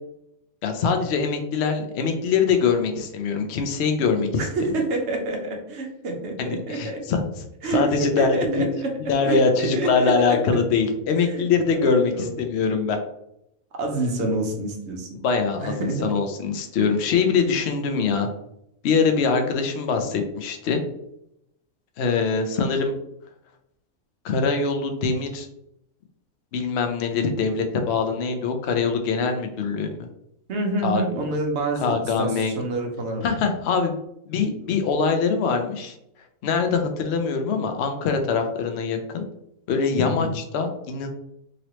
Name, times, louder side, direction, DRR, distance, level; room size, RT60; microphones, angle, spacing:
voice 1, 0.6-4.3 6.4-7.2 7.6-8.7 9.1-13.0 15.2-18.3 18.8-20.8 22.0-22.9 24.2-25.5 26.5-30.1 30.8-31.0 31.8-32.5 33.2-34.0 34.3-35.9 36.4-39.2 39.7-41.1, left 5 dB, 60° left, 5 dB, 0.7 m, -23 dB
voice 2, 4.4-7.0 7.6-8.9 9.2-10.4 11.1-12.3 13.8-15.1 15.6-16.0 30.5-33.3 40.0-40.3, right 2 dB, 60° right, 2 dB, 1.0 m, -27 dB
3.0 x 2.9 x 2.9 m, 0.79 s
omnidirectional pair, 1.5 m